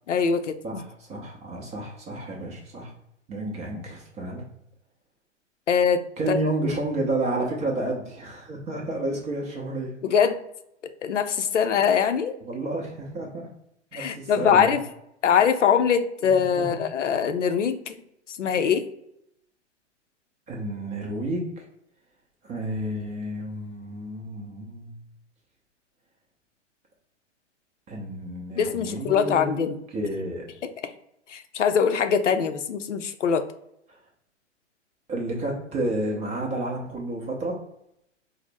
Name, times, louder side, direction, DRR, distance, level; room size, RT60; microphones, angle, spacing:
voice 1, 0.1-0.8 5.7-6.4 10.0-10.4 11.0-12.4 13.9-14.8 15.2-18.0 18.4-18.8 28.6-29.8 30.6-30.7 31.3-33.5, left 7 dB, 80° left, 9 dB, 0.5 m, -23 dB
voice 2, 0.6-2.9 3.3-4.4 6.2-9.9 12.4-13.5 13.9-14.8 16.2-16.8 20.5-21.6 22.4-24.9 27.9-29.5 29.9-30.4 33.9-34.0 35.1-37.6, right 1 dB, 20° right, -2 dB, 0.6 m, -31 dB
3.9 x 2.0 x 3.3 m, 0.78 s
figure-of-eight pair, 105°, 36 cm